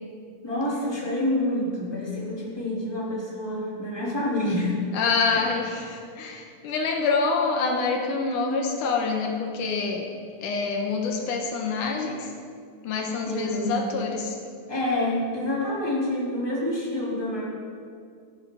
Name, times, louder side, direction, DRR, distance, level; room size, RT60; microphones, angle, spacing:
voice 1, 0.4-4.8 5.3-5.4 13.3-13.8 14.7-17.4, left 1 dB, 5° left, -7 dB, 3.2 m, -27 dB
voice 2, 4.9-10.1 10.4-12.3 12.8-14.4, left 4 dB, 75° left, 2 dB, 2.5 m, -26 dB
16.0 x 13.0 x 4.0 m, 2.2 s
omnidirectional pair, 3.7 m